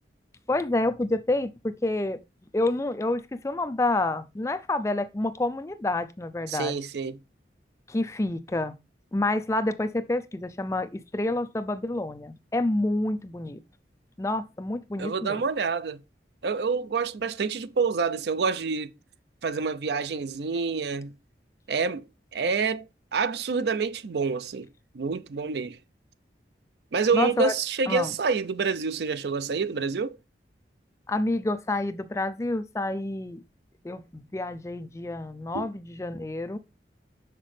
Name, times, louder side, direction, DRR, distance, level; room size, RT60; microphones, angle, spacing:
voice 1, 0.5-2.2 2.5-6.7 7.9-8.7 9.1-13.6 14.2-15.4 27.1-27.5 27.9-28.1 31.1-33.4 33.8-36.6, left 2 dB, 15° left, 0.3 m, -28 dB
voice 2, 6.5-7.2 15.0-16.0 16.4-18.9 19.4-21.1 21.7-22.0 22.3-22.9 23.1-24.7 24.9-25.8 26.9-30.2 35.5-35.7, right 5 dB, 75° right, 0.5 m, -27 dB
6.1 x 5.8 x 3.2 m
head